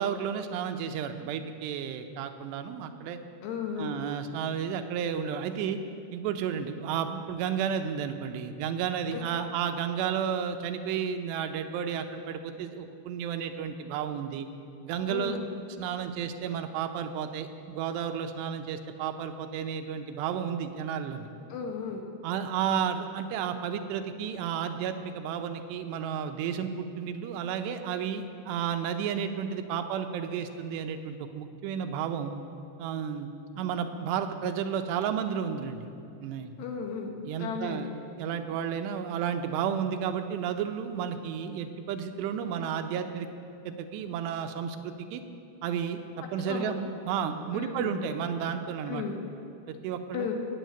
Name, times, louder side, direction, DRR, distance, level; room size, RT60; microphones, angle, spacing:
voice 1, 0.0-3.2 3.8-5.8 6.1-14.5 14.8-15.4 15.8-21.3 22.2-32.3 32.8-33.3 33.6-35.9 36.2-36.5 37.3-37.9 38.2-43.3 43.7-45.2 45.6-49.0 49.7-50.3, right 8 dB, 90° right, 7 dB, 3.0 m, -32 dB
voice 2, 3.4-3.9 9.1-9.2 15.1-15.5 21.5-22.0 36.6-37.1 37.4-37.9 46.5-46.8 47.5-48.0 48.9-49.2 50.1-50.3, left 6 dB, 80° left, 2 dB, 3.6 m, -34 dB
16.0 x 7.5 x 9.1 m, 2.6 s
omnidirectional pair, 4.8 m